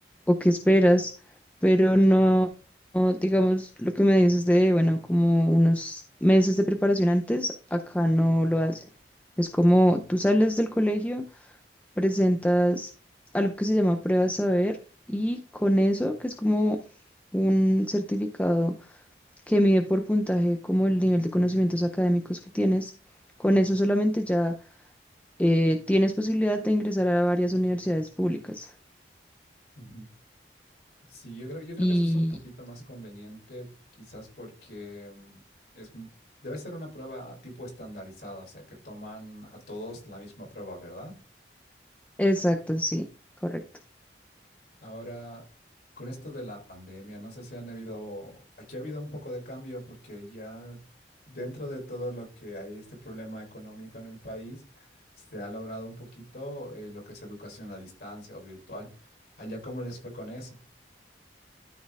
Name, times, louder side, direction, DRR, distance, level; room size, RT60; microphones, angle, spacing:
voice 1, 0.3-1.1 1.6-2.5 2.9-8.8 9.4-11.2 12.0-12.9 13.3-14.8 15.1-16.8 17.3-19.0 19.5-22.9 23.4-24.5 25.4-28.7 31.8-32.3 42.2-43.1 43.4-43.6, equal, 10° left, 5 dB, 0.5 m, -23 dB
voice 2, 29.8-30.1 31.1-33.7 34.0-35.4 35.7-36.1 36.4-41.1 44.8-45.4 46.0-50.8 51.2-54.9 55.2-60.6, equal, 60° left, 0 dB, 4.0 m, -41 dB
13.0 x 4.3 x 3.5 m, 0.36 s
head